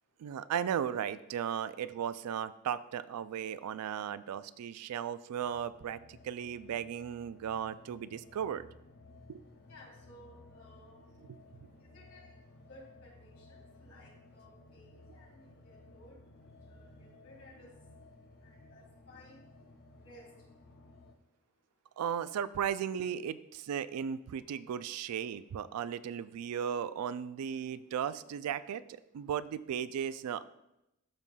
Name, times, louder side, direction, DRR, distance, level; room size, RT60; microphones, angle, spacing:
voice 1, 0.2-8.7 9.3-9.4 11.3-11.4 22.0-30.4, right 8 dB, 90° right, 16 dB, 0.3 m, -36 dB
sound 1, 5.4-21.1, left 2 dB, 45° left, 0.5 m, -57 dB
voice 2, 9.7-11.1 11.8-12.3 12.7-13.5 13.8-16.1 16.7-17.7 18.4-19.4 20.0-20.3, left 1 dB, 70° left, -3 dB, 2.7 m, -57 dB
12.0 x 5.5 x 2.3 m, 0.89 s
head